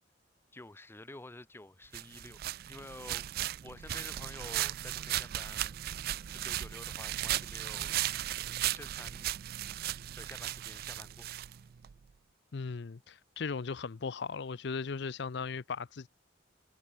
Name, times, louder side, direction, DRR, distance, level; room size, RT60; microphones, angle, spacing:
voice 1, 0.5-2.4 2.7-3.3 3.6-5.8 6.3-7.9 8.7-9.3 10.2-11.3, left 2 dB, 10° left, 0.6 m, -49 dB
sound 1, 1.9-11.9, right 13 dB, 50° right, 0.3 m, -36 dB
voice 2, 12.5-16.1, left 5 dB, 60° left, 0.5 m, -37 dB
head